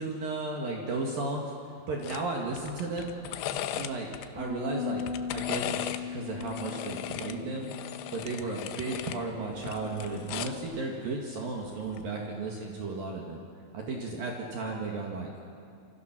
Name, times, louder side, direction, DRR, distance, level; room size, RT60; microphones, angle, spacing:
voice 1, 0.0-1.5 1.9-3.1 3.7-4.1 4.3-5.0 5.3-7.7 8.1-13.4 13.7-15.3, right 3 dB, 55° right, -1 dB, 3.2 m, -34 dB
sound 1, 2.0-2.2 2.6-4.3 4.9-6.0 6.4-9.2 9.5-10.7 11.8-12.0, left 11 dB, 75° left, 2.9 m, -37 dB
Bass guitar, 4.4-10.6, left 5 dB, 5° right, 3.7 m, -39 dB
27.5 x 26.5 x 6.1 m, 2.7 s
omnidirectional pair, 5.5 m